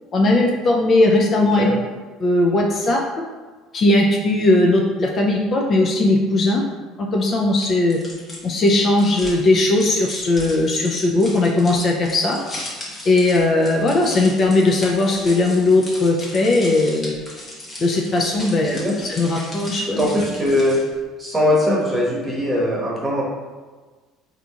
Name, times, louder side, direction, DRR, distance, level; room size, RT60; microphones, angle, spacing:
voice 1, 0.1-1.7 2.2-3.0 3.7-6.6 7.0-8.0 8.4-12.4 13.1-17.2 17.8-20.1, left 2 dB, 40° left, 0 dB, 0.3 m, -18 dB
sound 1, 7.6-21.0, left 1 dB, 25° left, 0.9 m, -37 dB
voice 2, 18.6-19.0 20.0-20.8 21.2-23.2, left 1 dB, 15° right, -5 dB, 0.9 m, -20 dB
3.7 x 2.8 x 2.4 m, 1.3 s
cardioid pair, 120°, 0 cm